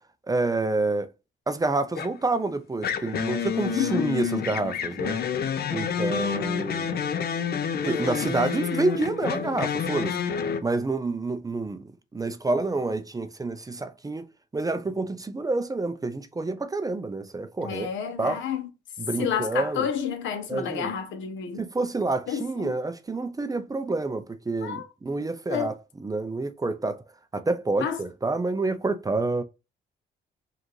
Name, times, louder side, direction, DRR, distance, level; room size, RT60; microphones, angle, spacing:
voice 1, 0.3-1.1 1.5-5.2 5.7-6.9 7.8-10.2 10.6-11.8 12.1-14.3 14.5-17.9 18.2-18.4 19.0-19.9 20.5-20.9 21.6-25.7 26.0-27.0 27.3-29.4, right 3 dB, 20° right, 0.5 m, -28 dB
sound 1, 2.0-2.3 2.8-10.6, left 7 dB, 50° left, 0.6 m, -29 dB
voice 2, 3.6-4.1 17.6-18.7 19.2-21.6 22.3-22.7 24.6-24.9 25.5-25.7 27.8-28.0, left 8 dB, 75° left, 0.9 m, -30 dB
5.0 x 2.5 x 3.1 m
cardioid pair, 90°, 20 cm